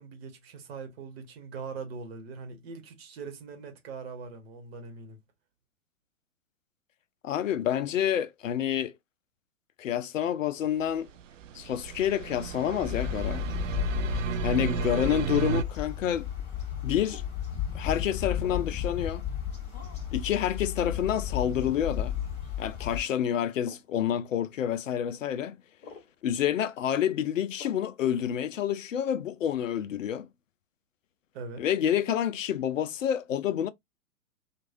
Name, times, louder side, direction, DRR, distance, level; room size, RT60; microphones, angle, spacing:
voice 1, 0.0-5.2 14.5-15.1 31.3-31.6, right 4 dB, 45° right, 1.2 m, -41 dB
voice 2, 7.2-8.9 9.8-11.1 11.5-13.4 14.1-16.3 16.8-17.2 17.7-19.3 20.1-22.1 22.6-25.6 26.2-30.3 31.6-33.7, left 10 dB, 65° left, 0.5 m, -28 dB
sound 1, 10.9-15.6, right 7 dB, 60° right, 0.5 m, -33 dB
sound 2, 12.8-23.0, left 9 dB, 15° left, 1.1 m, -33 dB
sound 3, 17.0-17.3 18.4-18.7 19.7-20.1 20.9-21.1 21.7-21.9 23.0-23.2 23.6-23.9 25.0-25.2 25.8-26.1 27.6-27.9, left 4 dB, 50° left, 1.3 m, -49 dB
3.1 x 2.5 x 2.5 m
figure-of-eight pair, 110°, 42 cm